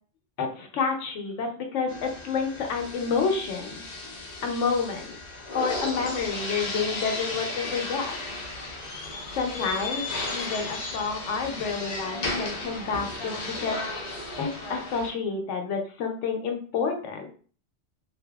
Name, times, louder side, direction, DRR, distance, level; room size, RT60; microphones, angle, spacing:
voice 1, 0.4-3.8 4.4-5.1 5.5-8.1 9.3-10.0 10.3-13.8 14.4-17.3, left 5 dB, 80° left, 4 dB, 0.9 m, -29 dB
sound 1, 1.9-15.1, left 2 dB, 50° left, 0.5 m, -34 dB
2.6 x 2.6 x 2.2 m, 0.43 s
omnidirectional pair, 1.2 m